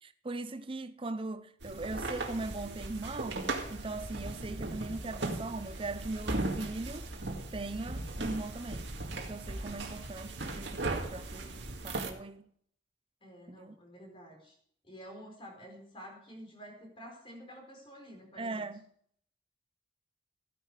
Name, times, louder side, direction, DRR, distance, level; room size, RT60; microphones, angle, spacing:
voice 1, 0.0-3.4 3.7-7.1 7.5-8.9 9.2-12.5 13.5-13.8 18.4-18.8, right 2 dB, 30° right, 0.6 m, -40 dB
sound 1, 1.6-12.1, right 2 dB, 70° right, 2.1 m, -38 dB
voice 2, 13.2-14.6 14.8-18.7, equal, 30° left, 4.4 m, -50 dB
15.0 x 9.9 x 4.9 m
head